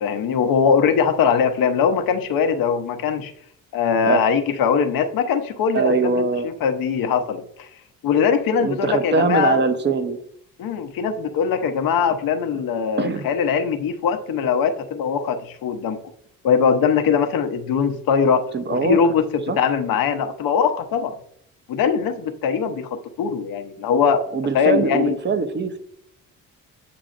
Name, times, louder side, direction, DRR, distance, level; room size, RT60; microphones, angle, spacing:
voice 1, 0.0-3.3 3.7-7.7 8.0-9.6 10.6-16.0 16.4-21.2 21.7-24.3 24.5-25.2, left 6 dB, 80° left, 7 dB, 0.8 m, -21 dB
voice 2, 5.7-6.5 8.6-10.2 12.5-12.6 13.0-13.3 18.5-19.0 19.5-19.6 24.3-25.8, right 4 dB, 30° right, 10 dB, 0.7 m, -22 dB
8.6 x 6.1 x 2.5 m, 0.68 s
cardioid pair, 115°, 34 cm